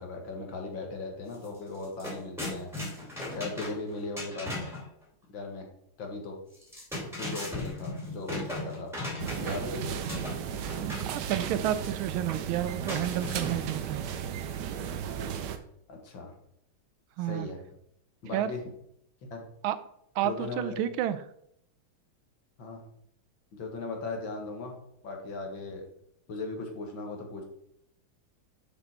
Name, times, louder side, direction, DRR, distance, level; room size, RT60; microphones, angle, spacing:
voice 1, 0.0-2.7 3.3-4.8 5.3-5.7 6.0-6.4 6.9-8.9 9.4-10.0 15.9-16.3 17.3-17.6 18.2-18.6 19.3-19.4 20.2-20.8 22.6-22.8 23.5-24.8 25.0-25.8 26.3-27.4, left 3 dB, 70° left, 2 dB, 2.3 m, -38 dB
sound 1, 1.3-1.5 1.7-4.9 6.5-9.7 10.1-11.1 12.9-13.8, left 1 dB, ahead, 2.5 m, -37 dB
sound 2, 9.2-15.6, right 8 dB, 65° right, 1.2 m, -35 dB
voice 2, 11.0-14.0 17.2-17.5 18.3-18.5 19.6-19.8 20.1-21.2, right 12 dB, 80° right, 13 dB, 1.5 m, -30 dB
6.9 x 6.6 x 4.4 m, 0.74 s
omnidirectional pair, 2.2 m